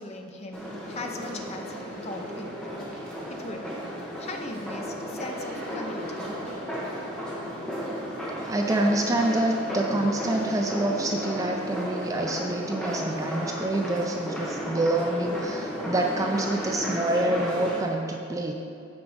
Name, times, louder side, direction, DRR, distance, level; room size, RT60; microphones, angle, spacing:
voice 1, 0.0-2.5 2.9-3.0 3.3-3.7 4.2-6.4, left 2 dB, 30° left, 3 dB, 0.6 m, -39 dB
sound 1, 0.5-17.8, equal, 5° left, 1.0 m, -34 dB
voice 2, 8.4-18.5, right 1 dB, 15° right, 2 dB, 0.3 m, -27 dB
6.0 x 5.1 x 6.3 m, 2.5 s
head